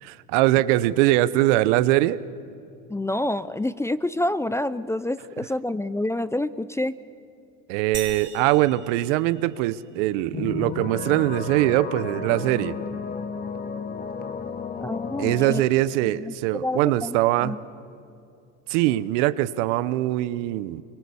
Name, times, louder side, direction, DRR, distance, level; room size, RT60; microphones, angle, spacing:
voice 1, 0.0-2.2 7.7-12.8 15.2-17.5 18.7-20.8, right 15 dB, 75° right, 16 dB, 0.9 m, -22 dB
voice 2, 2.9-7.0 14.8-15.6 16.0-17.6, left 1 dB, 10° left, 16 dB, 0.5 m, -28 dB
sound 1, 7.9-9.9, right 6 dB, 30° right, 4.3 m, -40 dB
sound 2, 10.3-15.6, left 5 dB, 25° left, 1.5 m, -33 dB
24.5 x 24.0 x 7.0 m, 2.6 s
supercardioid pair, 90°, 36 cm